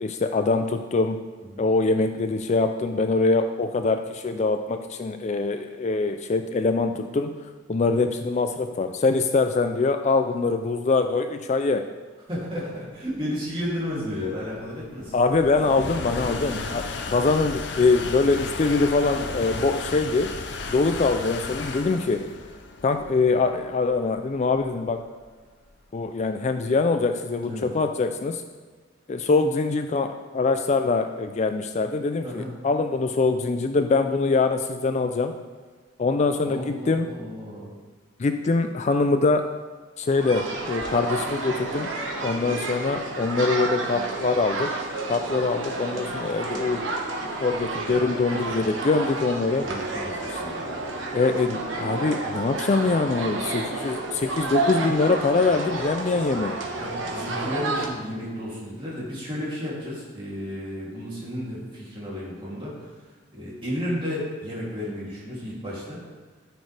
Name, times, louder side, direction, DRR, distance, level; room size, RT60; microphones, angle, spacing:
voice 1, 0.0-1.2 1.6-7.3 7.7-11.9 15.1-20.3 20.7-22.3 22.8-25.0 25.9-28.4 29.1-35.3 36.0-37.1 38.2-39.4 40.0-41.9 42.2-44.8 45.1-46.9 47.4-49.7 50.3-50.4 51.1-56.6, left 3 dB, 35° left, 7 dB, 0.4 m, -23 dB
voice 2, 12.3-15.1 27.4-27.7 32.2-32.5 36.4-37.7 49.6-50.1 50.4-50.7 56.8-62.9 63.3-66.0, equal, 25° right, -6 dB, 2.8 m, -33 dB
sound 1, 12.9-26.0, left 3 dB, 60° left, 0.7 m, -35 dB
sound 2, 40.1-57.9, right 2 dB, 75° right, 1.3 m, -30 dB
13.0 x 6.3 x 3.3 m, 1.5 s
head